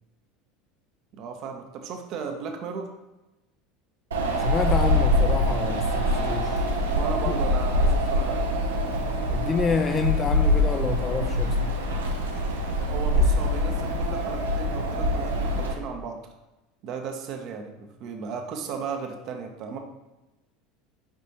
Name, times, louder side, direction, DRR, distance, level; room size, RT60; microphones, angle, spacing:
voice 1, 1.1-2.9 6.9-8.5 12.8-16.2 16.8-19.8, right 5 dB, 55° right, 0.9 m, -35 dB
Wind, 4.1-15.7, left 1 dB, 85° right, 0.8 m, -24 dB
voice 2, 4.4-6.6 7.3-7.4 9.3-11.7, left 5 dB, 30° left, 0.3 m, -28 dB
7.3 x 5.1 x 3.0 m
hypercardioid pair, 75°, 0 cm